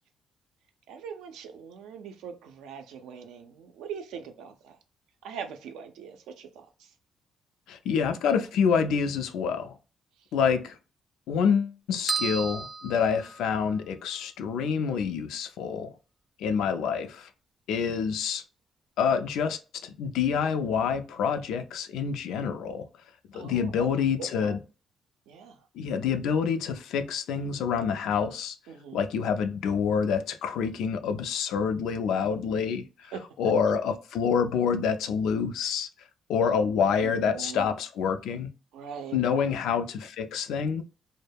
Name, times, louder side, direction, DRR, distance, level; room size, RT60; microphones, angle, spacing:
voice 1, 0.9-4.8 5.2-6.7 23.3-23.9 24.2-24.6 25.3-25.6 28.7-29.1 33.1-33.5 36.6-36.7 37.0-37.7 38.7-39.5, right 6 dB, 90° right, 0.4 m, -41 dB
voice 2, 7.7-9.8 10.3-10.7 11.3-15.9 16.4-17.3 17.7-18.4 19.0-22.9 23.3-24.6 25.8-28.6 28.9-32.8 33.4-35.9 36.3-38.5 39.1-40.8, left 6 dB, 85° left, 0.3 m, -27 dB
sound 1, 12.1-13.9, right 5 dB, 25° right, 0.4 m, -33 dB
2.2 x 2.0 x 3.2 m
cardioid pair, 90°, 0 cm